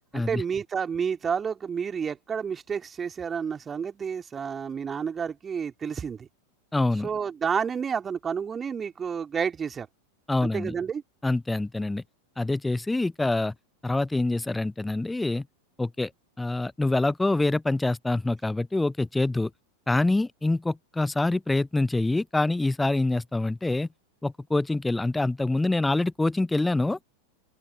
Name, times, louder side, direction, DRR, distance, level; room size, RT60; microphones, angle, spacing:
voice 1, 0.1-6.3 7.0-9.9 10.4-11.0, right 6 dB, 20° right, 2.9 m, -30 dB
voice 2, 6.7-7.1 10.3-10.7 11.2-12.0 12.4-13.5 13.8-15.5 15.8-16.1 16.4-19.5 19.9-23.9 24.2-27.0, left 2 dB, 5° left, 0.6 m, -25 dB
open air
figure-of-eight pair, 90°, 0 cm